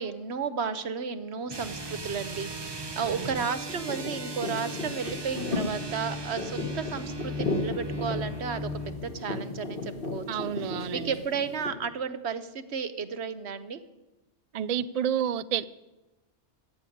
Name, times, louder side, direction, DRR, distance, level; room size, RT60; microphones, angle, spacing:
voice 1, 0.0-13.8, right 6 dB, 70° right, 1.2 m, -33 dB
sound 1, 1.5-9.0, equal, 25° right, 0.9 m, -37 dB
voice 2, 3.1-3.4 10.3-11.1 14.5-15.7, right 9 dB, 50° right, 0.4 m, -30 dB
sound 2, 3.7-11.7, left 3 dB, 50° left, 1.7 m, -35 dB
16.5 x 6.9 x 9.9 m
omnidirectional pair, 1.2 m